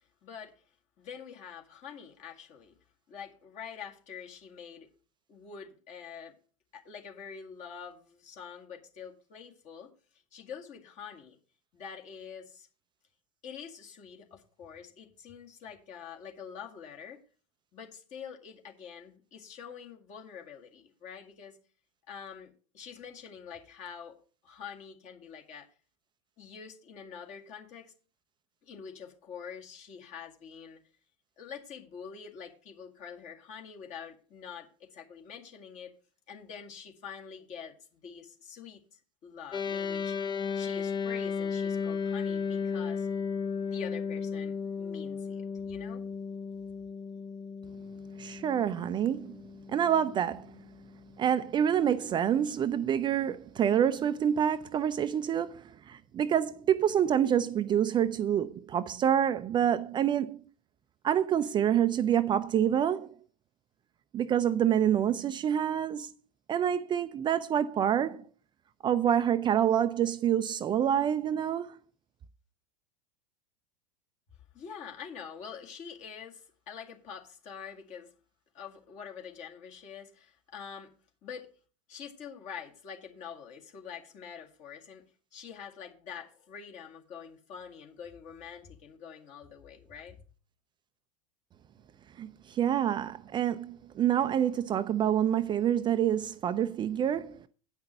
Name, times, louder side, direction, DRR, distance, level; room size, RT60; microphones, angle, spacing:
voice 1, 0.2-0.5 1.0-2.7 3.1-4.9 5.3-6.3 6.7-9.9 10.3-11.4 11.7-12.7 13.4-17.2 17.7-21.6 22.1-24.2 24.4-25.7 26.4-27.9 28.6-30.8 31.4-35.9 36.3-43.1 43.6-46.0 74.5-78.1 78.5-80.9 81.2-81.5 81.9-85.0 85.3-90.2, left 7 dB, 40° left, 2.1 m, -46 dB
sound 1, 39.5-51.0, left 6 dB, 25° left, 0.7 m, -35 dB
voice 2, 48.2-49.4 49.7-50.5 51.2-60.4 61.0-63.1 64.1-66.1 66.5-68.3 68.8-71.8 92.2-97.5, right 9 dB, 25° right, 0.5 m, -27 dB
8.9 x 5.8 x 6.5 m
hypercardioid pair, 90°, 18 cm